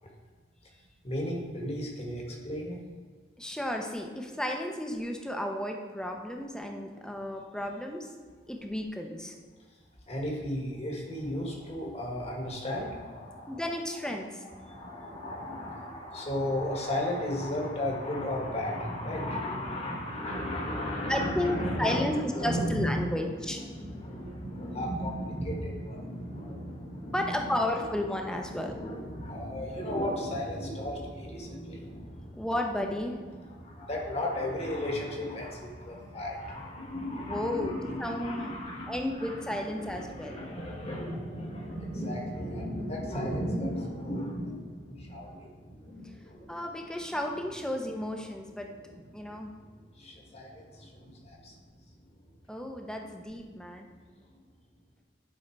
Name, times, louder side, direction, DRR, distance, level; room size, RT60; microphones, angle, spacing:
voice 1, 1.0-2.8 10.1-13.6 14.0-27.9 28.3-32.5 33.4-46.6 48.9-51.6, left 1 dB, 35° left, 0 dB, 1.5 m, -35 dB
voice 2, 3.4-8.1 8.5-9.4 13.5-14.4 21.1-23.6 27.1-28.7 32.3-33.2 37.3-38.5 38.9-40.4 46.5-48.7 49.1-49.5 52.5-53.9, left 1 dB, 5° left, 2 dB, 0.7 m, -33 dB
10.5 x 3.9 x 4.5 m, 1.5 s
head